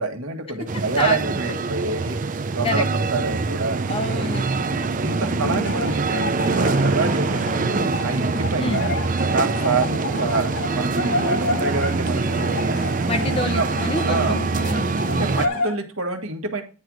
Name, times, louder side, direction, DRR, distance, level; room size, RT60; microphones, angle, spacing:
voice 1, 0.0-2.2 2.5-3.8 5.0-8.9 9.3-10.5 10.7-12.8 13.2-13.6 14.1-14.3 15.1-16.6, right 3 dB, 65° right, 4 dB, 1.5 m, -27 dB
sound 1, 0.7-15.5, right 4 dB, 35° right, 0.4 m, -24 dB
voice 2, 3.9-4.9 5.2-5.7 8.6-8.9 13.1-14.9, left 1 dB, 25° left, 7 dB, 0.7 m, -28 dB
sound 2, 4.2-15.7, left 3 dB, 85° left, 1.7 m, -30 dB
9.6 x 3.3 x 6.1 m, 0.34 s
head